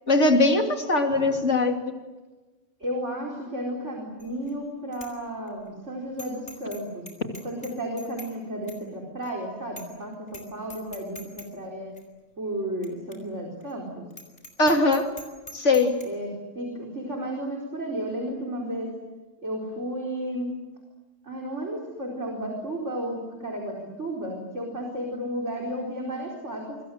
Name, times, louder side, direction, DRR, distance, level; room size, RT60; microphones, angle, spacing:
voice 1, 0.1-1.7 14.6-15.0 15.5-15.9, left 2 dB, 65° left, 3 dB, 3.3 m, -20 dB
voice 2, 1.1-1.5 2.8-7.1 7.4-11.9 12.4-14.1 16.0-16.3 16.5-18.9 19.4-20.6 21.2-26.8, right 1 dB, 65° right, -1 dB, 4.9 m, -33 dB
Bicycle bell, 4.2-4.5 4.9-5.1 5.5-5.6 6.2-6.8 7.1-8.3 8.7-8.8 9.2-9.3 9.8-10.0 10.3-10.4 10.7-11.5 12.0-12.1 12.8-12.9 13.1-13.2 13.6-13.7 14.1-16.1, left 1 dB, 30° left, 5.2 m, -43 dB
28.5 x 25.0 x 7.8 m, 1.2 s
omnidirectional pair, 1.3 m